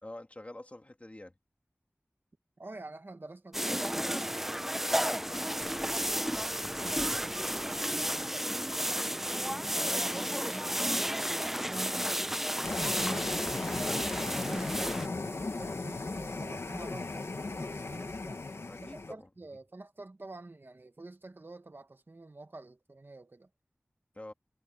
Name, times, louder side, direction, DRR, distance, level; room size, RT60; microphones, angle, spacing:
voice 1, 0.0-1.3 18.7-19.3 24.1-24.3, left 1 dB, 30° left, 3.1 m, -46 dB
voice 2, 2.6-9.1 9.6-12.4 12.8-13.9 14.3-18.4 18.8-23.5, right 2 dB, 55° right, 1.6 m, -47 dB
sound 1, 3.5-15.1, equal, 5° right, 0.8 m, -32 dB
sound 2, 12.6-19.1, left 3 dB, 75° left, 1.4 m, -37 dB
wide cardioid pair, 65°, 4 cm